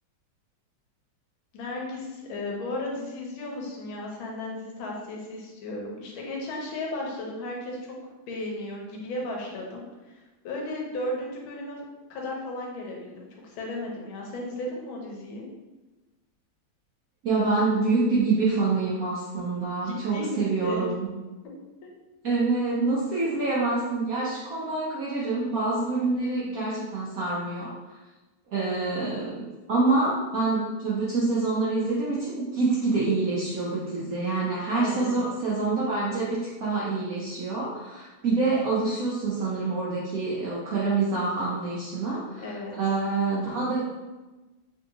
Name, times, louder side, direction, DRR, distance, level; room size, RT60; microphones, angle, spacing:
voice 1, 1.5-8.0 8.3-11.8 12.1-15.4 19.8-20.9 21.8-21.9 34.7-35.2 42.4-42.7, left 1 dB, 80° left, -1 dB, 1.4 m, -35 dB
voice 2, 17.2-21.1 22.2-27.9 28.5-43.8, right 3 dB, 70° right, -8 dB, 0.8 m, -26 dB
3.5 x 2.7 x 2.6 m, 1.1 s
omnidirectional pair, 2.3 m